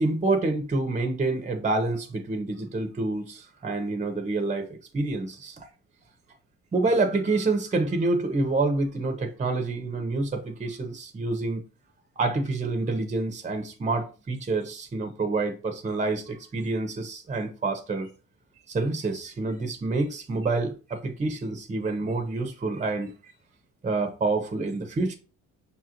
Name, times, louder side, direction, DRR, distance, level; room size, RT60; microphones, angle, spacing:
voice 1, 0.0-4.7 4.9-5.7 6.7-11.6 12.2-18.1 18.7-23.3 23.8-25.2, right 3 dB, 25° right, 0.7 m, -27 dB
5.5 x 2.5 x 2.9 m
cardioid pair, 90°, 30 cm